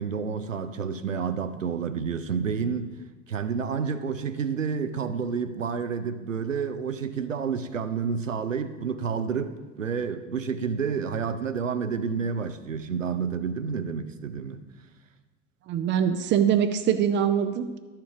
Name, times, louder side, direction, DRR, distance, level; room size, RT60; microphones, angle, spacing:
voice 1, 0.0-2.9 3.3-14.6, right 6 dB, 90° right, 11 dB, 0.6 m, -29 dB
voice 2, 15.7-17.8, right 8 dB, 30° right, 9 dB, 0.5 m, -23 dB
12.0 x 4.4 x 4.8 m, 1.2 s
figure-of-eight pair, 75°, 37 cm